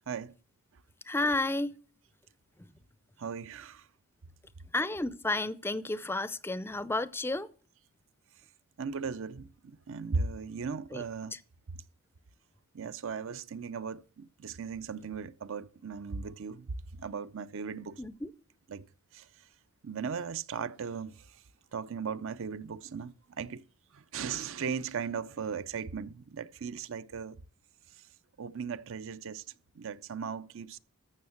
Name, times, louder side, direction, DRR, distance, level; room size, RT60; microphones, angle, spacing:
voice 1, 1.1-1.7 2.6-2.7 4.7-7.5 10.9-11.0 11.3-11.4 18.0-18.3, left 2 dB, 10° left, 0.5 m, -32 dB
voice 2, 3.2-3.8 8.8-11.4 12.7-16.7 17.0-18.0 18.7-18.9 19.1-19.3 19.8-21.3 21.7-23.6 23.9-27.4 28.4-29.4 29.8-30.8, right 5 dB, 60° right, 0.5 m, -37 dB
14.0 x 6.4 x 6.5 m
head